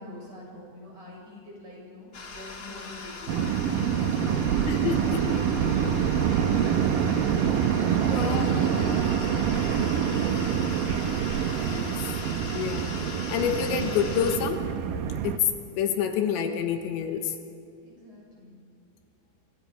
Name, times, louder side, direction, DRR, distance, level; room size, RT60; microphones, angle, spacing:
voice 1, 0.0-4.7 5.1-7.6 8.1-11.5 17.9-18.6, left 1 dB, 35° right, -3 dB, 7.5 m, -45 dB
sound 1, 2.1-14.4, left 4 dB, 60° left, 1.0 m, -40 dB
sound 2, 3.3-15.4, right 8 dB, 75° right, 2.1 m, -26 dB
voice 2, 4.7-5.2 8.0-8.5 11.6-11.9 12.5-12.9 13.3-14.6 15.2-15.4 15.8-17.3, left 8 dB, 80° left, 5 dB, 3.7 m, -28 dB
29.0 x 24.5 x 5.0 m, 2.5 s
omnidirectional pair, 5.2 m